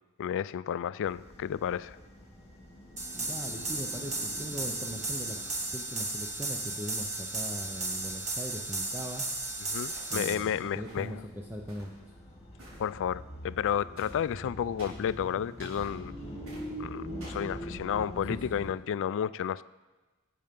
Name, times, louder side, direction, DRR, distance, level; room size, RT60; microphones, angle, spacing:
voice 1, 0.2-2.0 9.6-11.2 12.8-16.1 16.8-19.6, left 8 dB, 60° left, 18 dB, 0.3 m, -32 dB
sound 1, 1.0-18.7, equal, 30° left, 2.1 m, -45 dB
sound 2, 3.0-10.3, right 2 dB, 30° right, 1.3 m, -35 dB
voice 2, 3.2-5.5 5.7-9.2 10.1-12.1 18.3-18.4, equal, 10° right, 1 dB, 0.7 m, -40 dB
sound 3, 9.0-9.3 9.9-10.3 10.8-11.1 11.7-12.0 12.6-12.9 14.0-14.2 14.8-15.1 15.6-15.9 16.5-16.7 17.2-17.5, right 1 dB, 65° right, 4.6 m, -50 dB
12.5 x 7.5 x 5.2 m, 1.2 s
head